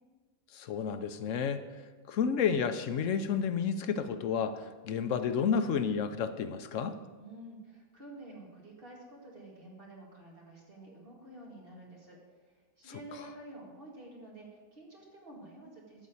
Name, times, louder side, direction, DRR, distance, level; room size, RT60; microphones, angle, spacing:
voice 1, 0.5-1.6 2.1-4.6 4.8-7.0, left 6 dB, 65° left, 9 dB, 0.9 m, -30 dB
voice 2, 7.2-16.1, right 1 dB, 35° right, -2 dB, 2.3 m, -50 dB
12.5 x 4.2 x 8.3 m, 1.4 s
omnidirectional pair, 1.7 m